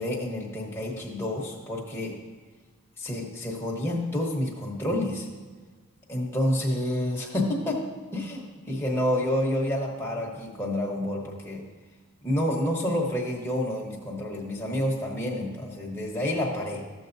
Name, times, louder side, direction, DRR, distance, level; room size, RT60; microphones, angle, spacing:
voice 1, 0.0-2.1 3.0-5.3 6.1-7.8 8.1-11.6 12.2-16.8, left 1 dB, 10° left, -3 dB, 1.1 m, -29 dB
14.0 x 7.0 x 2.6 m, 1.4 s
head